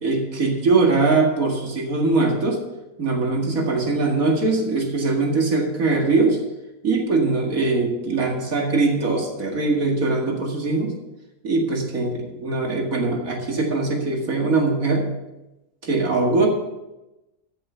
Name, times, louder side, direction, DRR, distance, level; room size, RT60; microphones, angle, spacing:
voice 1, 0.0-2.6 3.0-6.4 6.8-10.9 11.4-15.0 15.8-16.5, right 3 dB, 60° right, 1 dB, 2.4 m, -21 dB
13.5 x 7.0 x 5.6 m, 0.97 s
omnidirectional pair, 1.6 m